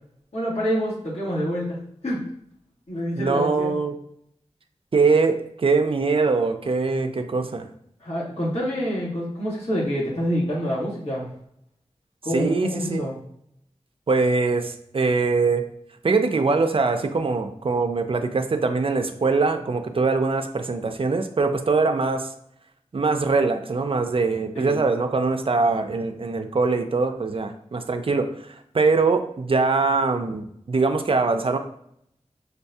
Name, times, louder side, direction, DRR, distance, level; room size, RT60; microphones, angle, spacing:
voice 1, 0.3-2.2 2.9-3.7 8.0-11.3 12.2-13.1 24.5-24.8, equal, 65° left, -6 dB, 1.6 m, -27 dB
voice 2, 3.2-3.9 4.9-7.6 12.3-13.0 14.1-15.7 16.0-22.3 22.9-31.6, right 4 dB, 50° right, 6 dB, 0.4 m, -22 dB
6.3 x 2.2 x 2.7 m, 0.71 s
wide cardioid pair, 50°, 12 cm